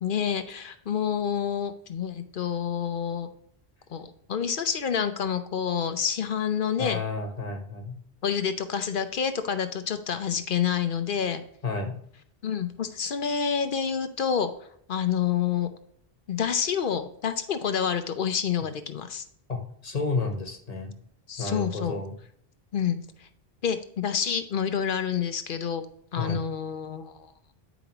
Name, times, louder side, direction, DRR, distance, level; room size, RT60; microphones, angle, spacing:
voice 1, 0.0-3.3 3.9-7.0 8.2-11.4 12.4-14.5 14.9-15.7 16.3-19.2 21.3-22.0 22.7-23.3 23.6-25.8 26.1-27.3, left 7 dB, 60° left, 9 dB, 0.8 m, -28 dB
voice 2, 6.8-8.0 11.6-11.9 19.5-20.9 21.4-22.1 26.2-26.4, left 3 dB, 40° left, 3 dB, 1.2 m, -31 dB
9.2 x 5.0 x 2.9 m, 0.67 s
omnidirectional pair, 1.1 m